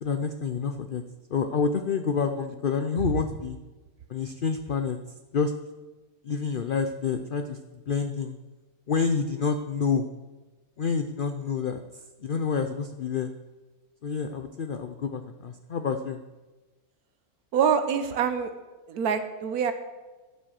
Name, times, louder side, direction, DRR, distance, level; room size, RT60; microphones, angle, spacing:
voice 1, 0.0-1.0 1.3-3.6 4.1-5.0 5.3-5.5 6.2-7.6 7.9-8.4 8.9-10.1 10.8-11.8 12.2-13.3 14.0-16.2, left 5 dB, 55° left, 7 dB, 0.6 m, -28 dB
voice 2, 17.5-18.5 18.9-19.7, right 7 dB, 85° right, 9 dB, 1.3 m, -25 dB
15.0 x 6.2 x 6.5 m, 1.2 s
omnidirectional pair, 1.6 m